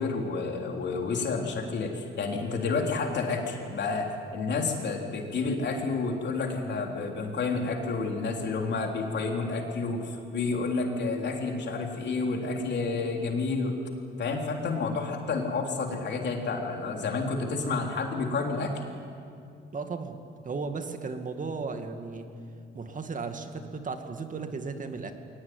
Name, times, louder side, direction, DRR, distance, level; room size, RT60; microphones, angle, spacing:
voice 1, 0.0-13.8 14.2-18.7, left 4 dB, 60° left, 2 dB, 3.7 m, -30 dB
voice 2, 19.7-20.2 20.4-22.3 22.7-25.1, right 4 dB, 40° right, 6 dB, 2.2 m, -35 dB
22.0 x 19.0 x 9.5 m, 2.4 s
cardioid pair, 90°, 20 cm